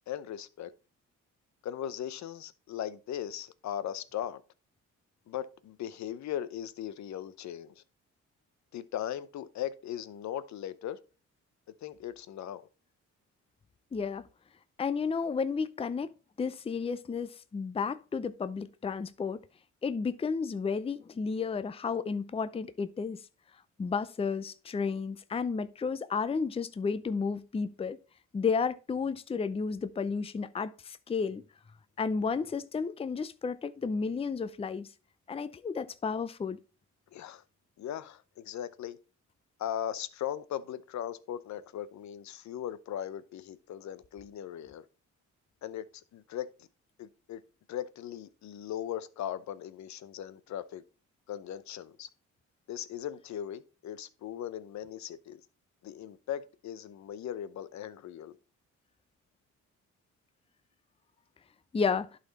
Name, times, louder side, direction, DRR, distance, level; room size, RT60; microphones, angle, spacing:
voice 1, 0.1-0.7 1.6-4.4 5.3-7.8 8.7-11.0 11.8-12.6 37.1-37.4 37.8-39.0 39.6-44.8 45.6-45.8 46.1-46.7 47.0-47.4 47.7-50.8 51.3-52.1 52.7-55.4 55.8-58.4, left 10 dB, 65° left, 0.8 m, -38 dB
voice 2, 13.9-14.2 14.8-16.1 16.4-19.4 19.8-23.2 23.8-28.0 28.3-31.4 32.0-34.9 35.3-36.6 61.7-62.1, left 5 dB, 20° left, 0.5 m, -32 dB
11.0 x 4.2 x 4.0 m
cardioid pair, 90°, 30 cm